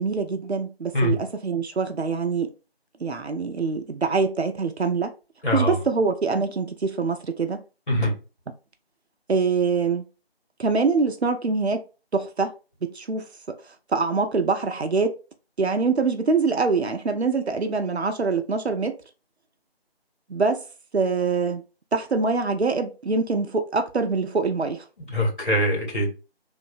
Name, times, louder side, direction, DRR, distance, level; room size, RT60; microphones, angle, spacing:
voice 1, 0.0-2.5 3.0-5.1 5.5-7.6 9.3-10.1 10.6-11.8 12.1-12.5 12.8-13.3 13.9-15.2 15.6-19.0 20.3-20.6 20.9-21.6 21.9-24.8, right 4 dB, 85° right, 0.6 m, -24 dB
voice 2, 5.4-5.8 7.9-8.2 25.1-26.1, equal, 50° left, 1.6 m, -23 dB
3.1 x 2.1 x 3.4 m
figure-of-eight pair, 165°, 32 cm